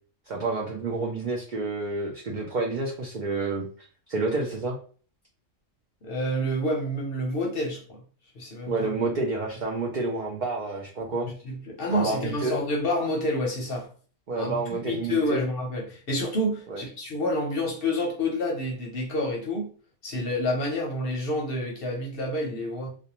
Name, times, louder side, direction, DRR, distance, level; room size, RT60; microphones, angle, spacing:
voice 1, 0.3-3.7 4.1-4.8 8.7-11.3 11.9-12.6 14.3-15.4 16.7-16.8, right 3 dB, 75° right, -1 dB, 0.4 m, -29 dB
voice 2, 6.0-8.0 8.4-8.9 11.4-13.9 14.4-19.7 20.0-22.9, left 1 dB, 55° left, 0 dB, 0.7 m, -28 dB
2.5 x 2.1 x 2.8 m, 0.41 s
omnidirectional pair, 1.4 m